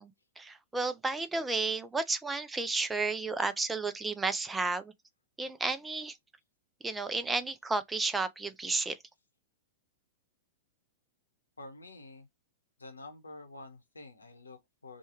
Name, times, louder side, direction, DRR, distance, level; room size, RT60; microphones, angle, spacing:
voice 1, 0.0-4.9 5.4-6.2 6.8-9.0, right 3 dB, 10° right, 0.4 m, -32 dB
voice 2, 11.6-12.3 12.8-15.0, left 2 dB, 80° left, 0.8 m, -48 dB
3.1 x 2.2 x 2.9 m
figure-of-eight pair, 100°, 0 cm